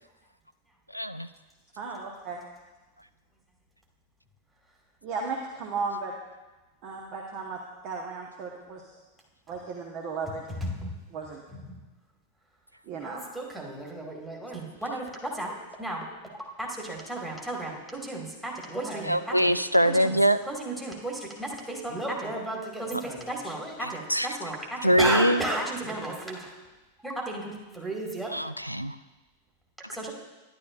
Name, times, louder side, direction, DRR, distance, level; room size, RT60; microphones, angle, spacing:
voice 1, 0.9-1.3 19.0-20.4 22.9-23.0 23.8-24.3 24.8-25.4 28.3-29.0, equal, 90° right, 12 dB, 0.3 m, -23 dB
voice 2, 1.8-2.4 5.0-6.1 6.8-7.6 7.8-8.8 9.5-10.4 11.1-11.4 12.9-13.2, right 4 dB, 40° right, 0 dB, 1.1 m, -35 dB
voice 3, 10.5-10.9 11.5-11.8 13.0-15.5 15.8-16.0 16.3-19.5 19.9-20.2 20.5-26.5 27.0-28.4 29.9-30.1, right 2 dB, 5° right, -3 dB, 2.0 m, -33 dB
12.0 x 10.5 x 2.5 m, 1.1 s
figure-of-eight pair, 90°, 0 cm